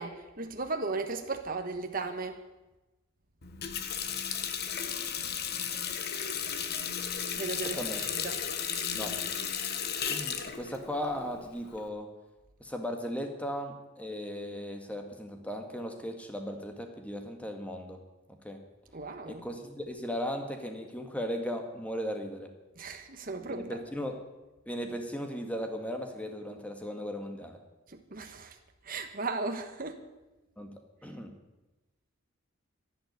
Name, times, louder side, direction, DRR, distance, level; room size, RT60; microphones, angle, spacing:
voice 1, 0.0-2.4 7.4-8.4 18.9-19.4 22.7-23.8 27.9-28.6 28.8-30.0, right 3 dB, 45° right, 5 dB, 1.3 m, -36 dB
Water tap faucet, 3.4-11.9, left 7 dB, 50° left, 1.3 m, -34 dB
voice 2, 8.9-9.4 10.1-12.1 12.6-18.0 18.4-18.6 19.3-22.5 23.4-24.2 24.7-27.6 30.6-30.7 31.0-31.3, equal, 5° left, 4 dB, 1.9 m, -37 dB
12.0 x 11.0 x 9.8 m, 1.1 s
head